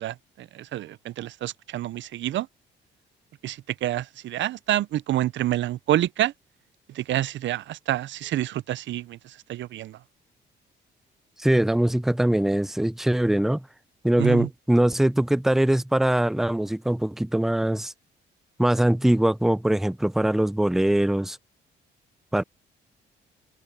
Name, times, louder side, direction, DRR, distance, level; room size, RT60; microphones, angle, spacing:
voice 1, 0.0-2.5 3.4-6.3 6.9-10.0 14.2-14.5, right 13 dB, 70° right, 0.6 m, -28 dB
voice 2, 11.4-13.6 14.0-17.9 18.6-21.4 22.3-22.4, right 1 dB, ahead, 0.4 m, -22 dB
cardioid pair, 90°, 20 cm